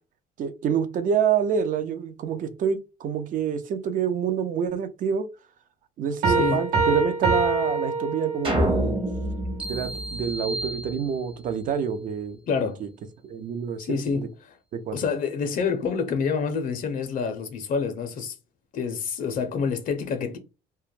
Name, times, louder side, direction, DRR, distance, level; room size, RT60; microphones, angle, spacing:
voice 1, 0.4-5.3 6.0-9.0 9.7-12.9 13.2-14.3 14.7-15.0, right 7 dB, 50° right, 0.5 m, -27 dB
voice 2, 6.2-6.6 12.5-12.8 13.8-14.6 14.9-18.3 18.7-20.4, left 5 dB, 55° left, 0.5 m, -27 dB
Piano, 6.2-8.7, right 3 dB, 80° right, 0.9 m, -24 dB
sound 1, 8.4-10.9, equal, 30° right, 0.8 m, -27 dB
sound 2, 9.6-11.5, right 2 dB, 5° right, 0.5 m, -35 dB
2.2 x 2.1 x 3.0 m
cardioid pair, 110°, 17 cm